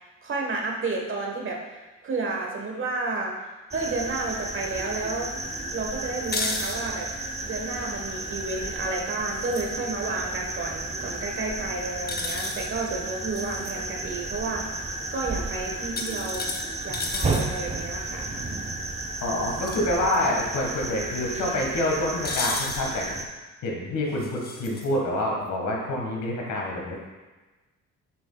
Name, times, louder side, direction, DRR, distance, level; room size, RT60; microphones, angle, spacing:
voice 1, 0.2-5.3 5.7-7.1 7.4-18.3, right 3 dB, 40° right, 0 dB, 1.4 m, -31 dB
sound 1, 3.7-23.3, right 2 dB, 20° right, 0.7 m, -33 dB
sound 2, 6.2-6.8 9.3-9.7 12.1-12.7 13.3-13.7 16.0-17.5 19.5-19.8 20.1-20.2 22.2-22.8 24.2-24.9, left 3 dB, 30° left, 0.8 m, -32 dB
voice 2, 19.2-23.2 23.6-27.1, left 1 dB, 75° left, -1 dB, 1.7 m, -27 dB
7.4 x 5.8 x 2.3 m, 1.2 s
cardioid pair, 90°, 30 cm